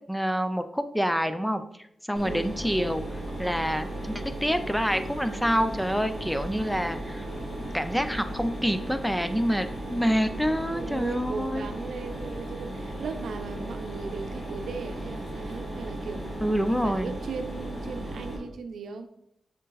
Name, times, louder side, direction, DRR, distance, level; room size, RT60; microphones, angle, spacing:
voice 1, 0.1-1.6 2.1-3.0 3.4-7.3 7.7-11.7 16.4-17.1, equal, 5° left, 9 dB, 0.5 m, -27 dB
Mechanisms, 2.1-18.4, right 1 dB, 45° left, 2.5 m, -36 dB
voice 2, 2.2-2.6 10.7-16.4 16.7-19.1, right 5 dB, 90° right, 8 dB, 0.6 m, -37 dB
6.6 x 5.2 x 3.9 m, 0.76 s
wide cardioid pair, 115°, 0 cm